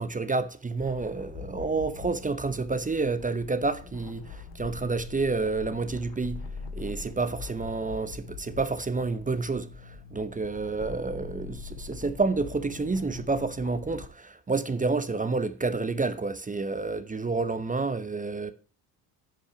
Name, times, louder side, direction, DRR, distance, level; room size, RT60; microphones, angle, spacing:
voice 1, 0.0-6.5 6.7-18.5, right 3 dB, 15° right, 0.8 m, -29 dB
sound 1, 0.8-14.1, left 5 dB, 65° left, 2.1 m, -43 dB
9.8 x 6.0 x 5.8 m
supercardioid pair, 70°, 46 cm